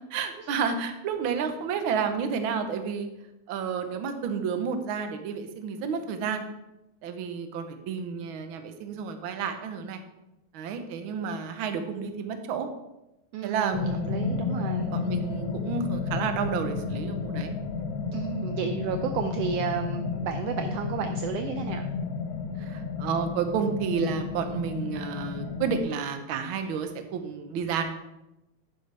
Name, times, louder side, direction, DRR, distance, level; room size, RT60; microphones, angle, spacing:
voice 1, 0.1-3.1 3.5-6.4 7.0-10.0 10.5-12.7 13.4-14.1 14.8-17.6 22.6-27.8, right 6 dB, 65° right, 7 dB, 1.3 m, -31 dB
voice 2, 13.3-14.9 18.1-21.9, right 7 dB, 80° right, 6 dB, 1.4 m, -32 dB
sound 1, 13.7-25.8, left 5 dB, 80° left, 2.3 m, -32 dB
11.0 x 10.5 x 3.4 m, 0.93 s
omnidirectional pair, 3.4 m